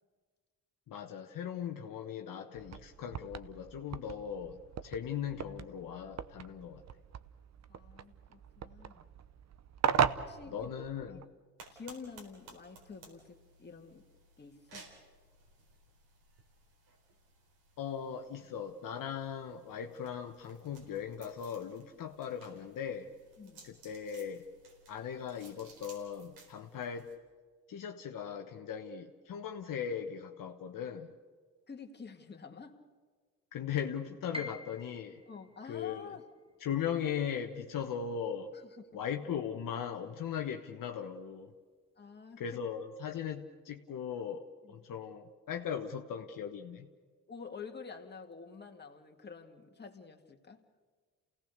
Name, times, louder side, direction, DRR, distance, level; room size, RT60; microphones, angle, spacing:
voice 1, 0.9-6.8 10.5-11.2 17.8-23.1 23.6-24.4 24.9-27.1 27.7-31.1 33.5-35.2 35.6-36.1 36.6-38.5 38.9-41.5 42.4-46.9, left 8 dB, 60° left, 3 dB, 1.3 m, -39 dB
sound 1, 2.5-11.3, right 8 dB, 45° right, 0.9 m, -38 dB
voice 2, 7.7-9.1 10.2-10.7 11.1-11.2 11.7-14.0 14.4-14.9 23.4-23.7 31.7-32.8 35.3-36.2 38.5-38.6 38.9-39.0 42.0-42.4 44.6-44.8 47.3-50.6, left 5 dB, 25° left, 3 dB, 2.2 m, -49 dB
sound 2, 11.6-27.2, right 3 dB, 75° right, 4.4 m, -59 dB
Piano, 34.3-40.3 40.6-41.7 42.2-42.3 43.0-43.3, left 1 dB, 15° right, 1.4 m, -51 dB
28.5 x 17.5 x 6.7 m, 1.5 s
supercardioid pair, 80°, 37 cm